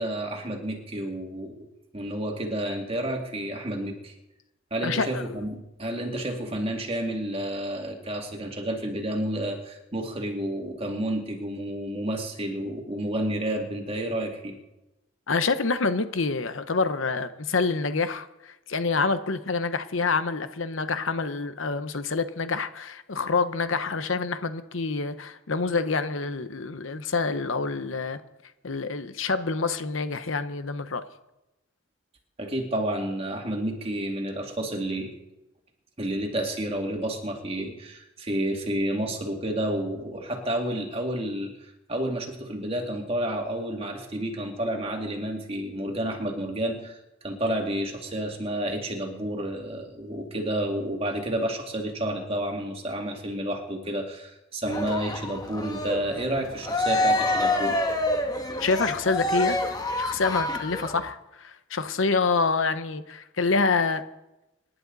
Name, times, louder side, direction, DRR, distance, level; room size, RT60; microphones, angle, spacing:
voice 1, 0.0-1.7 1.9-4.1 4.7-14.6 32.4-35.1 36.0-41.5 41.9-47.0 47.2-57.8, right 1 dB, 30° right, 1 dB, 2.5 m, -30 dB
voice 2, 4.8-5.3 15.3-28.2 28.6-31.0 58.6-59.6 60.0-64.0, left 4 dB, 75° left, 11 dB, 0.9 m, -27 dB
Cheering, 54.6-61.1, left 1 dB, 20° left, 1.3 m, -27 dB
26.5 x 11.0 x 4.1 m, 0.94 s
head